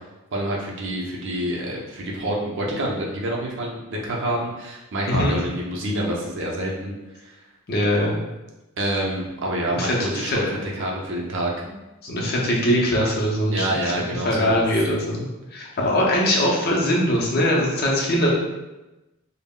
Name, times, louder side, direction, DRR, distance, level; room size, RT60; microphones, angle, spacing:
voice 1, 0.3-6.9 7.2-7.3 8.8-11.5 13.5-14.7, right 1 dB, 60° right, -2 dB, 0.5 m, -27 dB
voice 2, 7.7-8.2 9.7-10.6 12.0-13.8 14.2-18.3, equal, 45° left, -3 dB, 0.6 m, -22 dB
2.2 x 2.0 x 3.6 m, 1.0 s
head